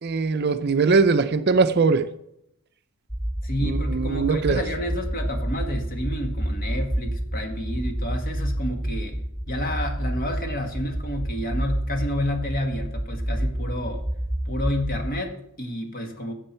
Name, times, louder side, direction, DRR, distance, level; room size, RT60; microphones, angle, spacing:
voice 1, 0.0-2.1 3.6-4.6, right 4 dB, 45° right, 0.5 m, -21 dB
sound 1, 3.1-15.1, right 1 dB, 5° left, 3.0 m, -29 dB
voice 2, 3.4-9.2 9.5-14.1 14.4-16.3, left 1 dB, 40° left, 1.7 m, -30 dB
15.0 x 7.6 x 4.4 m
head